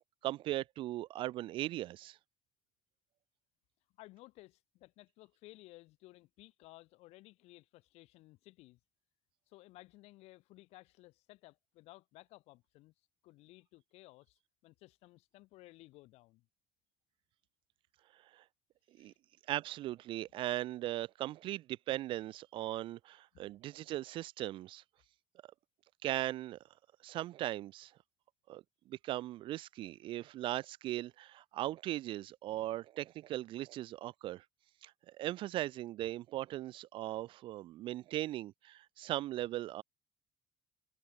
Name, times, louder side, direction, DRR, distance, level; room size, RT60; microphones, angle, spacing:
voice 1, 0.2-2.2 18.3-18.4 19.0-19.1 19.5-24.8 26.0-26.6 27.0-27.9 28.5-34.4 34.8-39.8, right 15 dB, 50° right, 0.6 m, -38 dB
voice 2, 4.0-8.8 9.5-12.9 13.2-16.5 19.0-19.1 23.3-23.4, left 19 dB, 65° left, 1.8 m, -58 dB
cardioid pair, 175°, 11 cm